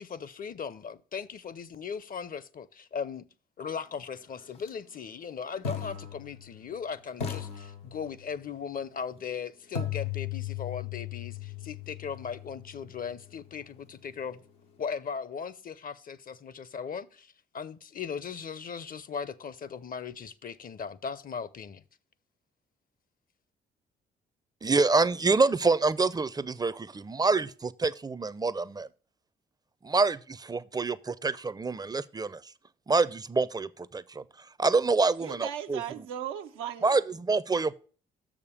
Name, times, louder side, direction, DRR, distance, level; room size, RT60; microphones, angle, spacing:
voice 1, 0.0-3.2 3.6-14.4 14.8-21.8, left 6 dB, 45° left, 0.6 m, -38 dB
sound 1, 4.5-4.7 5.6-6.8 7.2-8.4 9.7-13.7, left 9 dB, 90° left, 1.1 m, -37 dB
voice 2, 24.6-28.9 29.8-32.4 32.9-34.2 34.6-35.8 36.8-37.8, right 3 dB, 20° right, 0.5 m, -26 dB
voice 3, 35.2-37.0, right 9 dB, 80° right, 0.6 m, -37 dB
6.7 x 5.1 x 6.8 m
hypercardioid pair, 45°, 21 cm